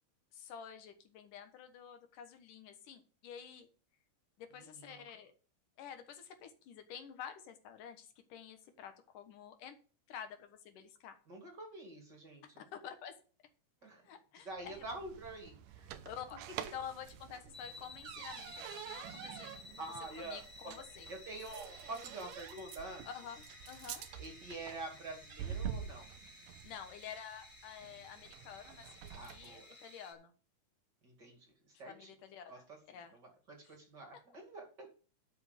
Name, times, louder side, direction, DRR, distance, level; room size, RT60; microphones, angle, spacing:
voice 1, 0.3-3.7 4.4-5.3 5.8-9.8 10.1-11.2 12.6-13.1 14.0-14.8 16.0-16.4 16.7-19.5 20.2-21.1 23.0-23.4 23.7-24.1 26.6-30.3 31.8-33.1 34.1-34.2, left 8 dB, 80° left, 7 dB, 2.9 m, -49 dB
voice 2, 4.5-5.0 11.3-12.4 13.8-14.1 14.3-16.0 19.8-20.7 21.1-23.1 24.2-26.1 29.1-29.7 31.0-32.1 32.5-34.9, right 2 dB, 35° right, 2 dB, 2.9 m, -47 dB
sound 1, 14.5-29.6, right 9 dB, 85° right, 2.4 m, -48 dB
sound 2, 17.5-30.1, left 2 dB, 5° right, 3.2 m, -55 dB
11.5 x 7.1 x 5.2 m, 0.38 s
omnidirectional pair, 3.7 m